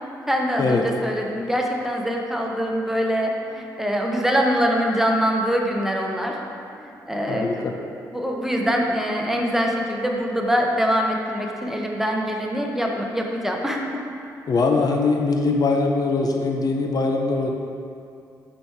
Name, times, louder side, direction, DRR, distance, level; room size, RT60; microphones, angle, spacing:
voice 1, 0.3-6.4 6.8-7.5 8.1-13.8, equal, 5° right, 0 dB, 0.8 m, -24 dB
voice 2, 7.3-7.7 14.5-17.5, left 3 dB, 50° left, 2 dB, 0.6 m, -22 dB
5.2 x 4.4 x 4.6 m, 2.5 s
supercardioid pair, 60°, 8 cm